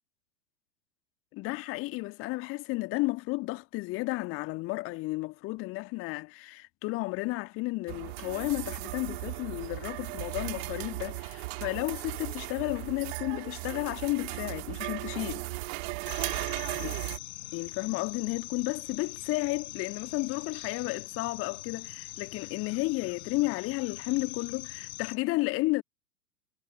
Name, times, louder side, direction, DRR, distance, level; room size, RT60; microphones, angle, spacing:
voice 1, 1.3-15.5 16.8-17.0 17.5-25.8, left 22 dB, 25° left, 1.6 m, -32 dB
sound 1, 7.9-17.2, right 23 dB, 40° right, 2.8 m, -36 dB
sound 2, 16.1-25.2, left 20 dB, 45° left, 3.6 m, -43 dB
figure-of-eight pair, 105°, 50 cm